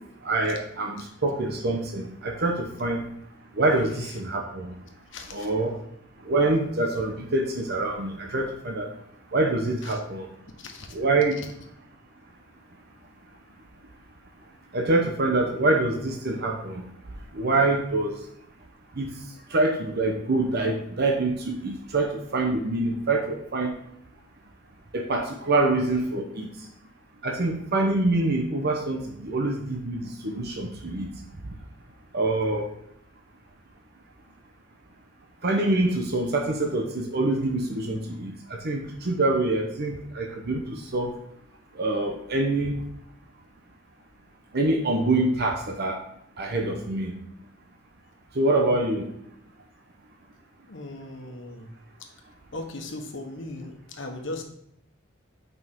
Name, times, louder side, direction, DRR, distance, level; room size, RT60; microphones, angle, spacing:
voice 1, 0.2-3.0 3.6-4.7 5.3-5.7 6.2-8.9 9.3-10.3 10.9-11.4 14.7-16.8 17.3-18.2 19.0-19.1 19.5-23.7 24.9-26.5 27.2-31.1 32.1-32.7 35.4-38.3 38.6-41.1 41.8-42.8 44.5-46.0 46.4-47.1 48.3-49.1, right 2 dB, 55° right, 1 dB, 0.9 m, -25 dB
voice 2, 5.1-5.5 9.8-10.0 10.6-11.0 50.7-51.7 52.0-54.4, left 2 dB, 70° left, 4 dB, 1.3 m, -38 dB
8.9 x 5.4 x 3.7 m, 0.76 s
head